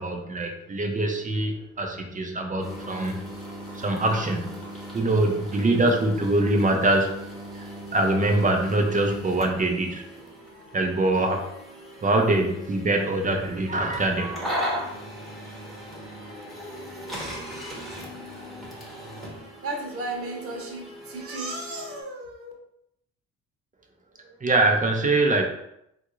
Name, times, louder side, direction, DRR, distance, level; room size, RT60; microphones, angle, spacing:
voice 1, 0.0-3.2 3.7-4.6 4.9-7.2 7.5-10.1 10.7-11.4 12.0-14.6 24.4-25.5, right 2 dB, 25° right, 3 dB, 0.6 m, -24 dB
sound 1, 2.6-22.0, equal, ahead, 1.0 m, -38 dB
voice 2, 19.2-22.5, right 2 dB, 50° right, 1 dB, 1.0 m, -35 dB
3.5 x 2.4 x 3.0 m, 0.78 s
cardioid pair, 90°, 30 cm